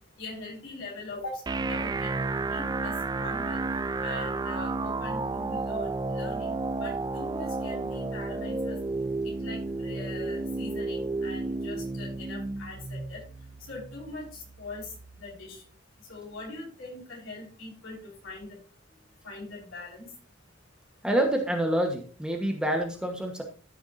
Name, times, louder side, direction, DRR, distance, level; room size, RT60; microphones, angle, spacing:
voice 1, 0.2-2.2 2.5-3.6 4.0-8.8 9.4-13.2 13.7-14.9 15.2-15.6 16.1-18.0 18.2-18.6 19.2-20.1, left 2 dB, 80° left, -4 dB, 5.4 m, -41 dB
sound 1, 1.5-15.4, right 3 dB, 20° right, 0.3 m, -32 dB
voice 2, 21.0-23.4, right 1 dB, 5° right, 2 dB, 1.2 m, -27 dB
13.5 x 7.0 x 2.7 m, 0.40 s
head